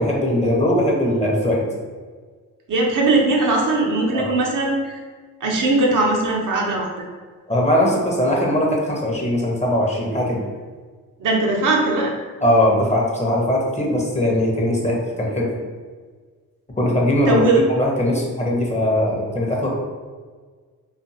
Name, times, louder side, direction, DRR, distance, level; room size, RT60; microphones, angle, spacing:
voice 1, 0.0-1.6 4.1-4.3 7.5-10.4 12.4-15.5 16.8-19.7, left 1 dB, 15° left, -3 dB, 0.8 m, -20 dB
voice 2, 2.7-4.9 5.4-6.9 11.2-12.1 17.3-17.6, right 2 dB, 50° right, -1 dB, 0.7 m, -19 dB
2.5 x 2.4 x 2.7 m, 1.5 s
hypercardioid pair, 50°, 41 cm